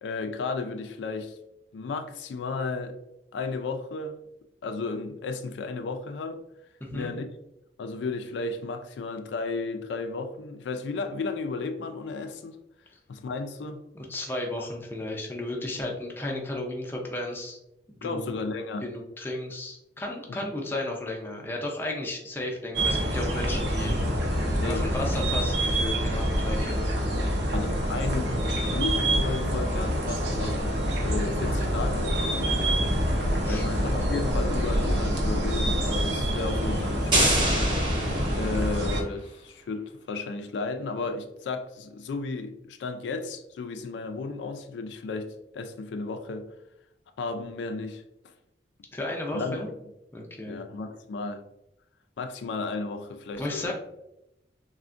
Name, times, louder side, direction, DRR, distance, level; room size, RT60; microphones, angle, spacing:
voice 1, 0.0-1.4 1.7-3.0 3.3-4.2 4.6-6.4 6.9-7.3 7.8-12.6 13.1-13.8 18.0-18.9 20.3-20.4 24.6-25.1 27.5-28.4 28.6-33.1 33.5-37.4 38.3-46.5 47.2-48.0 49.3-49.6 50.5-51.4 52.2-53.7, left 3 dB, 85° left, 0.3 m, -33 dB
voice 2, 13.9-17.6 18.0-18.3 18.8-24.1 24.6-27.1 33.3-33.7 48.9-49.7 50.1-50.6 53.4-53.7, left 1 dB, 10° left, 0.4 m, -34 dB
sound 1, 22.7-39.0, equal, 80° right, 0.6 m, -26 dB
sound 2, 37.1-38.9, right 1 dB, 25° right, 0.7 m, -26 dB
3.3 x 2.1 x 2.4 m
head